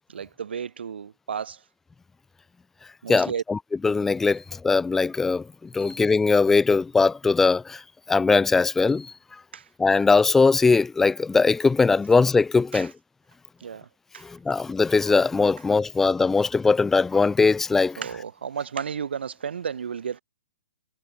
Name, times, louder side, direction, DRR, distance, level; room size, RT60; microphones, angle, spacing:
voice 1, 0.1-1.6 3.0-3.4 9.5-9.7 12.7-12.9 13.6-13.9 14.1-14.2 18.0-20.2, right 7 dB, 75° right, 6.0 m, -32 dB
voice 2, 3.1-5.4 5.7-7.8 8.1-9.1 9.8-12.9 14.2-18.0, left 4 dB, 5° left, 1.0 m, -20 dB
hypercardioid pair, 165°, 6 cm